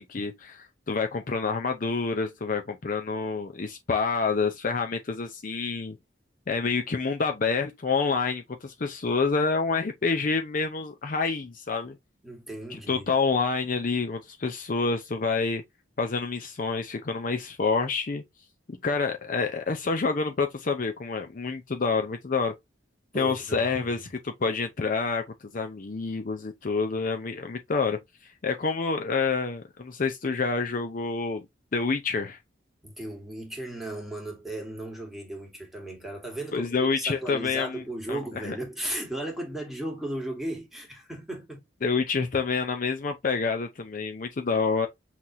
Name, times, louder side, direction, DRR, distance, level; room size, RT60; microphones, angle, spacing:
voice 1, 0.0-6.0 6.5-11.9 12.7-15.6 16.0-18.2 18.7-22.5 23.1-25.2 25.5-28.0 28.4-31.4 31.7-32.4 36.5-37.8 38.1-38.2 38.4-38.5 41.8-44.9, left 4 dB, 45° left, 0.5 m, -28 dB
voice 2, 12.2-13.1 23.1-24.2 32.8-41.6, right 1 dB, ahead, 1.6 m, -36 dB
5.7 x 3.0 x 2.6 m
head